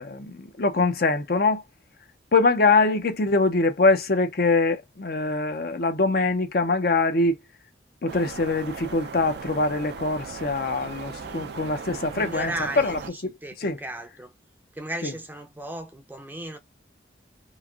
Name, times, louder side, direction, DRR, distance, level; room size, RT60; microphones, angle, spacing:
voice 1, 0.0-1.6 2.3-7.4 8.0-13.8 15.0-15.1, left 3 dB, 55° left, 0.6 m, -23 dB
sound 1, 8.1-13.1, right 5 dB, 65° right, 0.4 m, -38 dB
voice 2, 12.2-14.3 14.7-16.6, right 1 dB, 10° right, 0.5 m, -36 dB
3.1 x 2.5 x 2.3 m
head